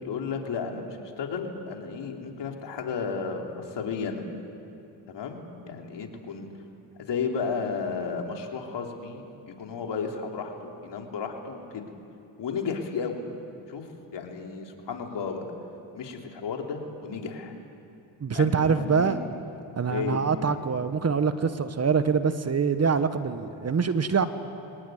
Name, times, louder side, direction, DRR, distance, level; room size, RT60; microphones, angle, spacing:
voice 1, 0.0-4.2 5.1-6.5 7.1-11.8 12.4-13.2 13.7-13.9 14.1-15.4 15.9-17.5 18.3-19.2 19.9-20.2, left 5 dB, 60° left, 2 dB, 3.5 m, -33 dB
voice 2, 18.2-19.2 19.8-24.3, right 5 dB, 35° right, 11 dB, 1.2 m, -24 dB
24.0 x 19.0 x 9.4 m, 2.7 s
cardioid pair, 75°, 46 cm